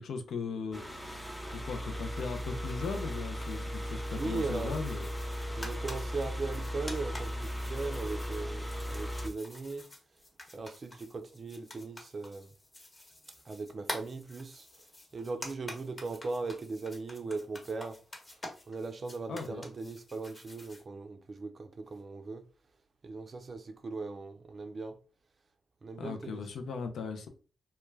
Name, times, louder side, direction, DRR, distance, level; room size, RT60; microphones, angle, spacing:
voice 1, 0.0-5.1 19.3-19.7 26.0-27.3, left 5 dB, 75° left, 0.4 m, -38 dB
sound 1, 0.7-9.3, equal, 10° left, 0.5 m, -37 dB
sound 2, 2.1-20.8, left 1 dB, 35° left, 1.0 m, -48 dB
voice 2, 4.1-4.7 5.5-9.8 10.5-12.5 13.5-14.7 15.1-18.0 18.7-22.4 23.0-25.0 25.8-26.4, right 3 dB, 50° right, 0.4 m, -38 dB
2.2 x 2.2 x 3.2 m
supercardioid pair, 45°, 0 cm